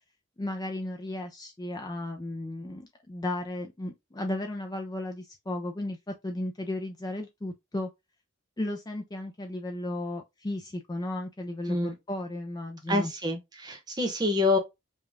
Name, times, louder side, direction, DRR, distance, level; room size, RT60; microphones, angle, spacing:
voice 1, 0.4-7.9 8.6-13.1, left 1 dB, 20° left, 0.4 m, -34 dB
voice 2, 12.9-14.6, left 2 dB, 20° right, 0.9 m, -27 dB
5.2 x 2.3 x 3.5 m
head